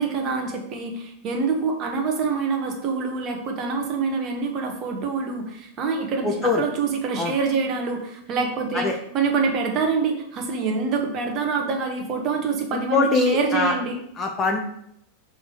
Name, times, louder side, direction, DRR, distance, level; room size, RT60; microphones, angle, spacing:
voice 1, 0.0-14.0, right 5 dB, 30° right, 3 dB, 1.0 m, -26 dB
voice 2, 6.2-6.6 7.2-7.3 8.7-8.9 12.7-13.7 14.2-14.6, left 4 dB, 15° left, 3 dB, 0.5 m, -22 dB
6.3 x 3.5 x 4.6 m, 0.74 s
supercardioid pair, 165°, 0 cm